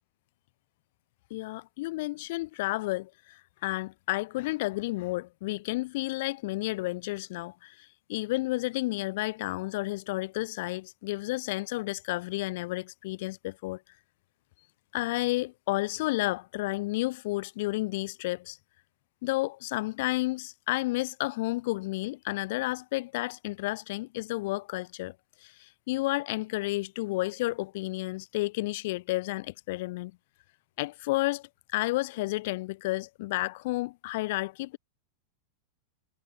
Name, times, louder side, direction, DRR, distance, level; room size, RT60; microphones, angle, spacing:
voice 1, 1.3-13.8 14.9-18.6 19.2-25.1 25.4-30.1 30.8-34.8, left 20 dB, 50° left, 0.7 m, -31 dB
figure-of-eight pair, 90°, 0 cm